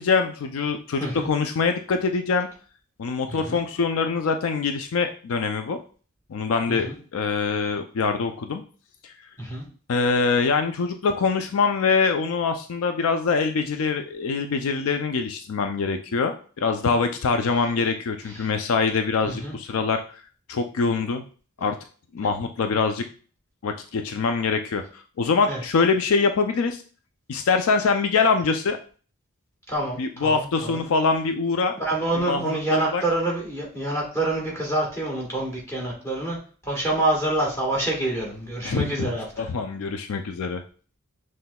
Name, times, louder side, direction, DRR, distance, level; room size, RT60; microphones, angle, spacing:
voice 1, 0.0-2.5 3.0-5.8 6.3-8.6 9.0-9.1 9.9-20.2 20.5-21.2 21.6-21.8 22.1-23.0 23.6-26.8 27.3-28.8 30.0-31.7 32.1-33.0 38.6-40.6, left 4 dB, 75° left, 7 dB, 0.4 m, -24 dB
voice 2, 1.0-1.3 3.3-3.6 6.7-6.9 9.4-9.6 19.2-19.5 25.5-25.6 29.7-30.8 31.8-36.4 36.6-39.5, right 2 dB, 15° left, -3 dB, 1.4 m, -27 dB
5.8 x 3.2 x 2.2 m, 0.40 s
head